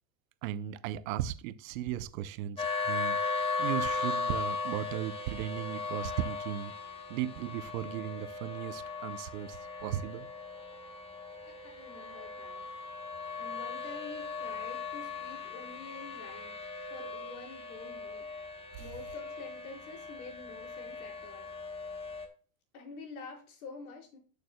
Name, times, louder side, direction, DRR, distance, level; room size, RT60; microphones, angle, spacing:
voice 1, 0.4-3.3 3.6-6.7 7.1-10.3 18.7-18.8, right 11 dB, 65° right, 0.7 m, -36 dB
sound 1, 2.6-22.3, left 4 dB, 15° left, 1.0 m, -38 dB
voice 2, 11.4-12.6 13.4-18.3 18.8-21.5 22.7-24.2, left 4 dB, 70° left, 4.8 m, -48 dB
12.5 x 6.7 x 2.2 m
supercardioid pair, 130°, 44 cm